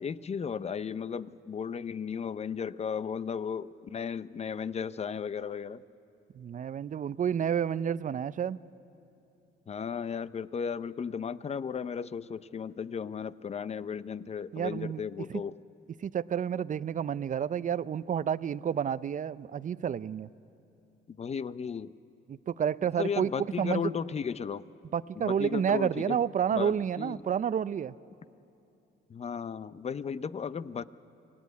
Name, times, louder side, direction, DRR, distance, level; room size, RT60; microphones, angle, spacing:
voice 1, 0.0-5.8 9.7-15.6 21.1-21.9 23.0-24.6 25.2-26.2 26.5-27.2 29.1-30.8, left 6 dB, 35° left, 16 dB, 0.6 m, -35 dB
voice 2, 6.3-8.6 14.5-15.0 15.3-15.4 16.0-20.3 22.3-23.9 24.9-28.0, right 8 dB, 40° right, 17 dB, 0.5 m, -30 dB
24.5 x 17.5 x 9.4 m, 2.8 s
cardioid pair, 90°, 20 cm